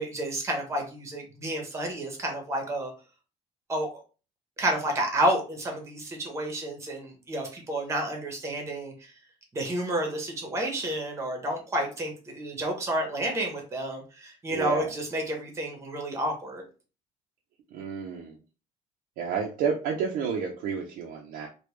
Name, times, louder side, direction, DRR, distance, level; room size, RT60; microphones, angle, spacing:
voice 1, 0.0-2.9 3.7-4.0 4.6-9.1 9.5-16.6, right 1 dB, 20° right, 2 dB, 0.9 m, -30 dB
voice 2, 14.5-14.9 17.7-18.3 19.2-21.5, right 6 dB, 90° right, 0 dB, 0.6 m, -30 dB
3.4 x 2.2 x 3.1 m, 0.34 s
cardioid pair, 175°, 15 cm